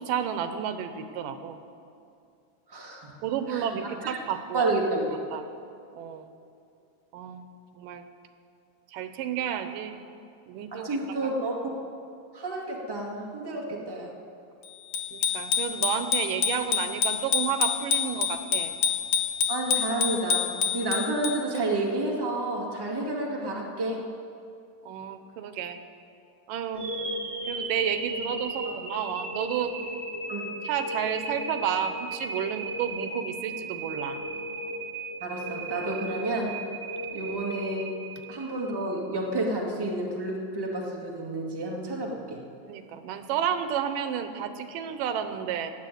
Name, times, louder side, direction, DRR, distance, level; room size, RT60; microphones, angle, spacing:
voice 1, 0.0-1.6 3.2-4.7 5.3-5.4 5.9-6.3 7.1-7.5 7.8-8.1 8.9-9.9 10.5-10.9 11.2-11.3 15.1-18.7 24.9-25.8 26.5-26.9 27.5-29.7 30.6-34.2 42.7-45.7, right 9 dB, 90° right, 9 dB, 2.5 m, -31 dB
voice 2, 2.7-3.1 3.5-4.2 4.5-5.2 10.7-11.8 12.3-14.1 19.5-24.1 30.3-30.5 35.2-36.6 37.1-38.0 38.3-42.4, right 2 dB, 10° right, -2 dB, 1.3 m, -30 dB
Bicycle bell, 14.9-21.6, left 7 dB, 80° left, 2.6 m, -27 dB
sound 1, 26.7-38.8, right 2 dB, 35° right, 1.0 m, -35 dB
17.5 x 7.8 x 9.3 m, 2.5 s
omnidirectional pair, 3.8 m